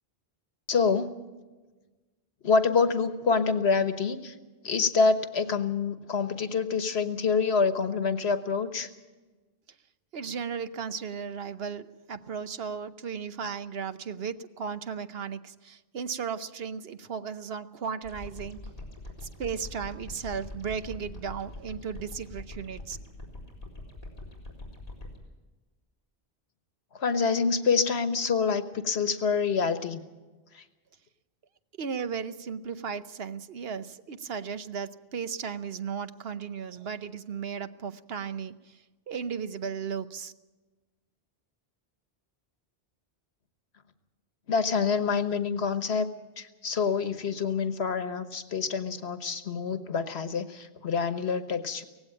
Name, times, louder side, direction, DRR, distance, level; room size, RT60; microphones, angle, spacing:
voice 1, 0.7-1.1 2.4-4.3 4.6-8.9 26.9-30.0 30.5-30.6 44.5-46.1 46.4-51.8, left 5 dB, 85° left, 10 dB, 1.5 m, -26 dB
voice 2, 10.1-18.6 19.2-23.0 31.8-40.3, right 6 dB, 70° right, 12 dB, 1.1 m, -35 dB
sound 1, 18.0-25.2, left 2 dB, 35° left, 4.4 m, -43 dB
18.0 x 16.0 x 8.9 m, 1.2 s
omnidirectional pair, 1.1 m